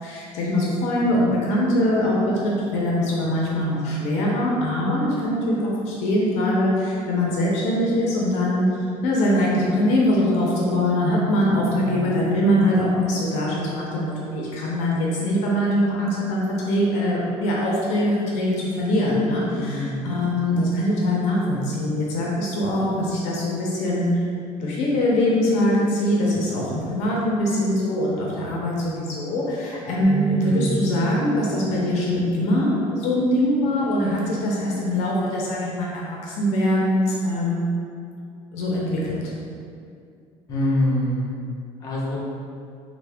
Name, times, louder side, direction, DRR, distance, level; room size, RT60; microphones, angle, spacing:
voice 1, 0.0-8.7 9.0-24.2 24.6-38.0 38.5-39.2, left 1 dB, 65° left, -4 dB, 0.6 m, -22 dB
voice 2, 11.7-12.1 19.5-20.1 30.4-30.8 40.5-41.4 41.8-42.2, left 1 dB, 30° left, -7 dB, 0.7 m, -25 dB
sound 1, 30.0-34.3 34.8-35.0 35.8-36.3, right 4 dB, 5° left, 1.0 m, -34 dB
3.5 x 2.1 x 3.3 m, 2.4 s
cardioid pair, 160°, 12 cm